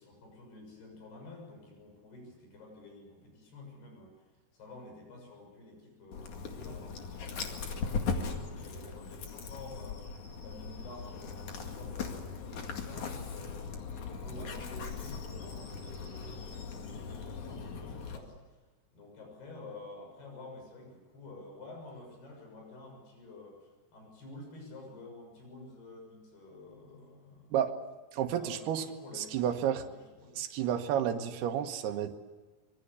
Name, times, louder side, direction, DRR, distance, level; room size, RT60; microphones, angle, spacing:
voice 1, 0.0-4.1 4.5-10.0 10.4-13.6 14.0-18.3 18.9-27.6 28.3-30.4, left 2 dB, 90° left, 1 dB, 8.8 m, -50 dB
Dog, 6.1-18.2, left 5 dB, 55° left, 3.3 m, -39 dB
voice 2, 28.1-28.8 29.1-29.9 30.4-32.2, right 9 dB, 90° right, 6 dB, 3.3 m, -31 dB
25.5 x 24.0 x 8.4 m, 1.2 s
omnidirectional pair, 4.5 m